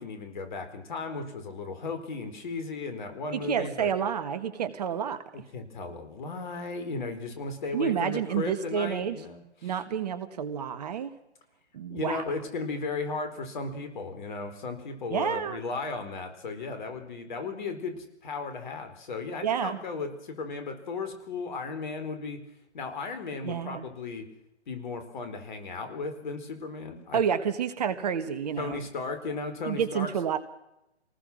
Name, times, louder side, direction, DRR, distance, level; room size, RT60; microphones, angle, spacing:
voice 1, 0.0-3.9 5.3-9.8 11.9-22.4 22.7-24.3 24.7-27.2 28.6-30.1, left 4 dB, 45° left, 7 dB, 4.3 m, -35 dB
voice 2, 3.3-5.2 7.7-9.2 9.6-11.1 11.7-12.2 15.1-15.6 19.4-19.8 23.4-23.8 27.1-28.8 29.7-30.4, right 8 dB, 35° right, 13 dB, 1.5 m, -29 dB
26.0 x 19.5 x 6.2 m, 0.84 s
figure-of-eight pair, 135°, 34 cm